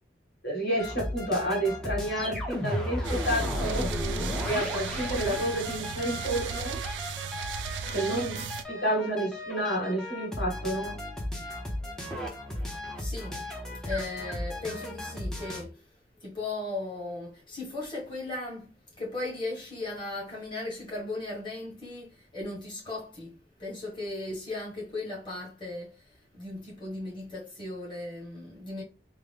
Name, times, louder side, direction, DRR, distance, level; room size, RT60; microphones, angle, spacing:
voice 1, 0.4-3.9 4.4-6.8 7.9-11.0, right 1 dB, 55° left, 1.6 m, -30 dB
sound 1, 0.8-15.6, left 1 dB, 5° left, 0.7 m, -35 dB
sound 2, 3.0-8.6, right 6 dB, 75° right, 0.3 m, -36 dB
voice 2, 13.0-13.4 13.8-15.8 16.2-28.8, left 2 dB, 25° left, 1.4 m, -37 dB
3.7 x 2.1 x 3.4 m
head